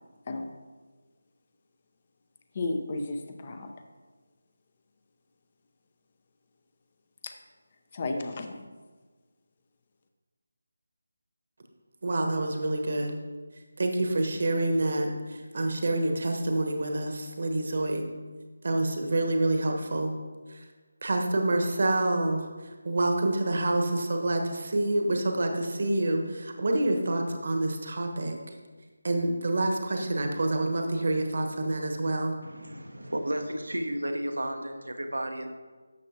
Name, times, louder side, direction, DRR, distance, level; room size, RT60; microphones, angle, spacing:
voice 1, 2.5-3.7 7.2-7.3 7.9-8.6, left 2 dB, 30° left, 5 dB, 0.7 m, -33 dB
voice 2, 12.0-13.2 13.8-18.0 18.6-20.1 21.0-22.5 22.8-28.3 29.0-32.4, right 2 dB, 50° right, 3 dB, 1.2 m, -27 dB
voice 3, 32.4-35.5, right 1 dB, 75° right, 5 dB, 0.9 m, -33 dB
12.0 x 6.9 x 2.8 m, 1.4 s
figure-of-eight pair, 160°, 0 cm